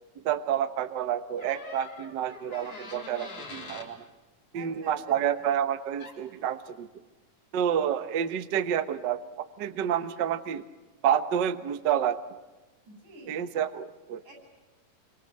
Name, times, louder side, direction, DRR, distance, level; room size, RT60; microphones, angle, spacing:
voice 1, 0.2-4.0 4.5-6.9 7.5-10.6 11.0-12.2 13.3-14.2, right 9 dB, 65° right, 10 dB, 1.1 m, -29 dB
Door, 1.4-3.9 5.7-5.8 6.0-6.4, left 3 dB, 55° left, 4.9 m, -44 dB
voice 2, 4.5-5.5 12.9-13.5 14.2-14.3, right 2 dB, 90° right, 3 dB, 9.5 m, -50 dB
27.0 x 25.0 x 7.8 m, 1.2 s
omnidirectional pair, 3.5 m